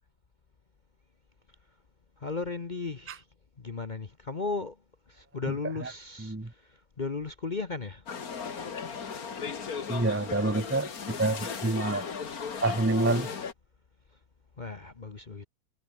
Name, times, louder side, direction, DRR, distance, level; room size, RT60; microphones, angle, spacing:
voice 1, 2.2-3.2 3.6-4.8 5.1-8.1 14.6-15.5, left 4 dB, 30° left, 1.1 m, -36 dB
sound 1, 8.1-13.5, left 6 dB, 65° left, 2.3 m, -36 dB
voice 2, 9.9-12.0 12.6-13.3, right 2 dB, 10° right, 0.9 m, -27 dB
omnidirectional pair, 1.7 m